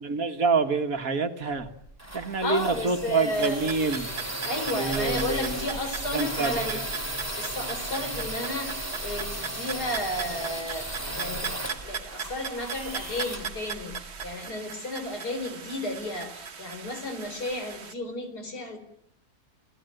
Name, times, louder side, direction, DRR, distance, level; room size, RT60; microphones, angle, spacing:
voice 1, 0.0-1.7 2.1-4.1 4.7-5.7 6.1-6.8, right 4 dB, 60° right, 7 dB, 1.9 m, -27 dB
sound 1, 1.6-14.3, right 1 dB, 10° right, 2.8 m, -35 dB
voice 2, 2.4-4.2 4.4-6.8 7.4-8.7 9.0-10.9 11.1-11.5 11.8-18.8, left 1 dB, 75° left, 7 dB, 4.8 m, -33 dB
sound 2, 3.3-17.9, right 7 dB, 45° right, 1.3 m, -39 dB
29.0 x 17.0 x 9.1 m, 0.76 s
omnidirectional pair, 1.7 m